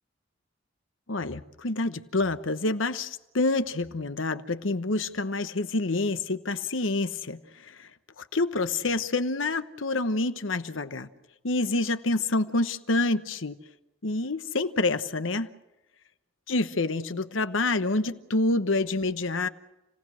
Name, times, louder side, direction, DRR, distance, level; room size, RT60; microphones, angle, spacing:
voice 1, 1.1-7.9 8.2-11.1 11.4-13.6 14.0-15.5 16.5-19.5, left 2 dB, 90° left, 11 dB, 1.2 m, -27 dB
29.5 x 18.0 x 6.4 m, 1.0 s
head